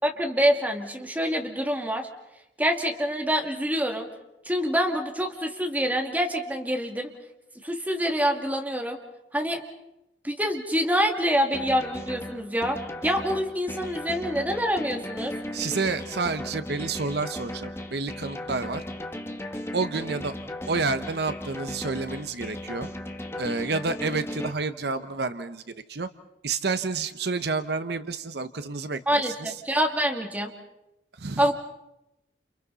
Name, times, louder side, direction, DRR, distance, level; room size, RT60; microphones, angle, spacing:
voice 1, 0.0-2.1 2.6-4.1 4.4-7.1 7.6-9.0 9.3-9.6 10.2-15.3 29.1-30.5 31.4-31.5, equal, 10° right, 2 dB, 2.4 m, -26 dB
sound 1, 11.5-24.5, left 1 dB, 15° left, 1.4 m, -36 dB
voice 2, 15.5-18.8 19.7-20.3 20.7-22.9 23.4-25.6 25.9-26.1 26.4-29.5 31.2-31.5, right 4 dB, 65° right, 10 dB, 0.9 m, -29 dB
30.0 x 29.5 x 4.1 m, 0.89 s
head